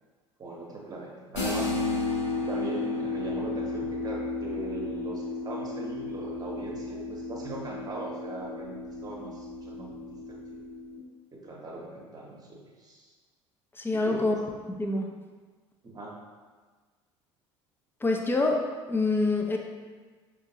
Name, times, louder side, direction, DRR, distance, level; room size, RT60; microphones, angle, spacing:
voice 1, 0.4-1.8 2.3-10.0 10.3-10.6 11.3-13.1 13.9-14.3 15.8-16.2, right 2 dB, 25° right, -2 dB, 1.0 m, -40 dB
sound 1, 1.3-11.0, left 2 dB, 75° left, 0.9 m, -33 dB
voice 2, 13.8-14.4 14.7-15.1 18.0-18.6 18.9-19.6, left 2 dB, 15° left, 2 dB, 0.6 m, -26 dB
5.4 x 2.5 x 2.8 m, 1.4 s
figure-of-eight pair, 65°, 15 cm